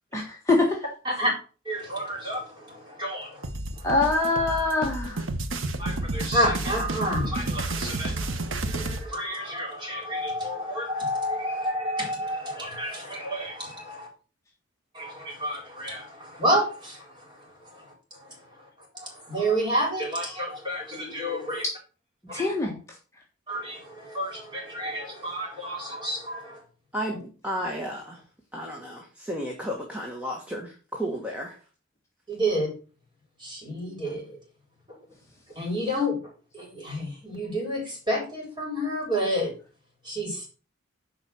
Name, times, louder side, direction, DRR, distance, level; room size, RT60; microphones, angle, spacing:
voice 1, 0.1-0.8 3.8-5.2 22.3-22.8, left 2 dB, 15° left, 1.5 m, -24 dB
voice 2, 1.6-3.5 3.8-3.9 5.8-14.1 14.9-17.9 18.2-18.3 18.9-21.6 22.3-22.5 23.5-26.6 32.3-32.7 33.4-34.4 35.6-36.2 36.5-39.5 40.0-40.5, equal, 20° right, 4.2 m, -30 dB
sound 1, 3.4-9.0, right 2 dB, 75° right, 1.0 m, -31 dB
voice 3, 26.9-28.2 28.5-31.6, equal, 5° right, 1.4 m, -33 dB
8.8 x 5.1 x 6.2 m
head